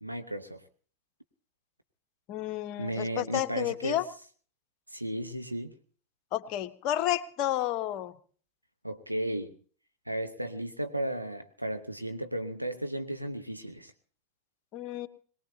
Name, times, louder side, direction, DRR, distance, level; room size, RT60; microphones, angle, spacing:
voice 1, 0.0-0.6 2.8-4.0 4.9-5.7 8.8-9.5 10.1-13.9, right 1 dB, 90° right, 6 dB, 1.1 m, -34 dB
voice 2, 2.3-4.0 6.3-8.2 14.7-15.1, left 13 dB, 40° left, 10 dB, 1.1 m, -31 dB
22.0 x 19.5 x 2.8 m, 0.43 s
figure-of-eight pair, 90°, 0 cm